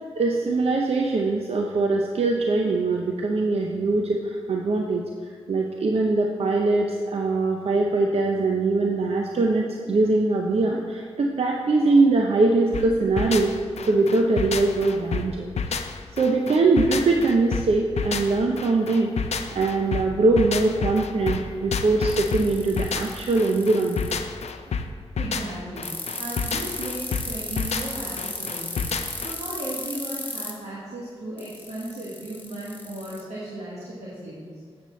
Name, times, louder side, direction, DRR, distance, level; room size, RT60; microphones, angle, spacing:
voice 1, 0.2-5.0 5.5-13.6 13.8-15.8 16.1-19.1 19.5-24.1, right 3 dB, 65° right, 1 dB, 0.6 m, -22 dB
sound 1, 12.7-29.3, left 5 dB, 80° left, 0.4 m, -30 dB
sound 2, 22.1-24.1 25.8-30.5 31.4-33.2, left 1 dB, 15° left, 1.3 m, -34 dB
voice 2, 25.2-28.9 29.2-34.6, right 1 dB, 85° right, -7 dB, 1.2 m, -36 dB
7.8 x 6.7 x 3.1 m, 2.1 s
cardioid pair, 40°, 11 cm